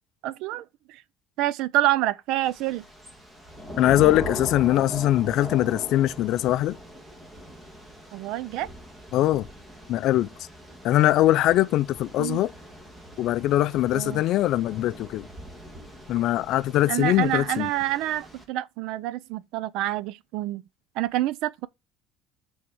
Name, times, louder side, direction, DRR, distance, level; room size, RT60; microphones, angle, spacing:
voice 1, 0.2-1.0 1.4-2.8 8.1-8.7 12.2-12.4 13.9-14.2 16.9-20.6 21.0-21.7, right 14 dB, 75° right, 0.5 m, -27 dB
Thunder / Rain, 2.4-18.4, equal, 10° right, 1.5 m, -41 dB
voice 2, 3.8-6.8 9.1-9.5 9.9-10.3 10.8-12.5 13.2-15.3 16.1-17.7, left 14 dB, 60° left, 0.4 m, -22 dB
6.1 x 3.6 x 6.0 m
cardioid pair, 145°, 0 cm